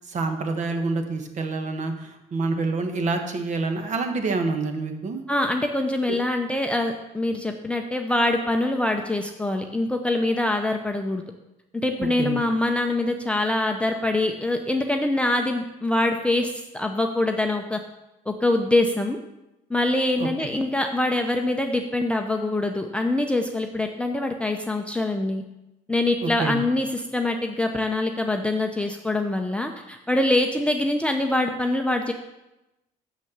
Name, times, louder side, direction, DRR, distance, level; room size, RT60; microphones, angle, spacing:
voice 1, 0.1-5.2 6.1-6.2 12.0-12.4 20.2-20.5 26.2-26.6, right 3 dB, 45° right, 5 dB, 1.4 m, -27 dB
voice 2, 5.3-11.2 11.7-17.8 18.3-19.2 19.7-25.4 25.9-32.1, left 2 dB, 5° left, 3 dB, 0.6 m, -24 dB
6.7 x 6.3 x 7.1 m, 0.95 s
cardioid pair, 110°, 17 cm